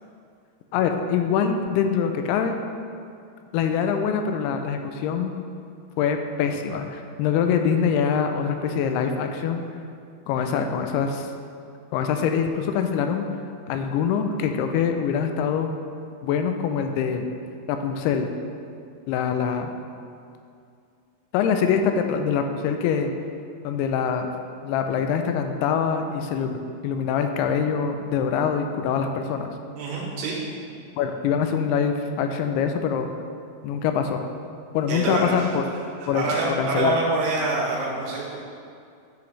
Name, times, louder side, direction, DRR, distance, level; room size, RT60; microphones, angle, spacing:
voice 1, 0.7-2.6 3.5-5.3 6.0-9.6 10.3-11.3 11.9-13.3 13.7-15.7 16.2-17.3 17.7-18.3 19.1-19.7 21.3-23.1 23.6-24.3 24.6-29.5 31.0-33.1 33.6-34.2 34.7-35.6 36.1-36.9, left 7 dB, 85° left, 6 dB, 2.5 m, -24 dB
voice 2, 29.8-30.4 30.6-30.7 34.9-35.5 36.0-38.4, right 2 dB, 80° right, -4 dB, 3.5 m, -26 dB
10.0 x 5.9 x 3.2 m, 2.4 s
omnidirectional pair, 4.6 m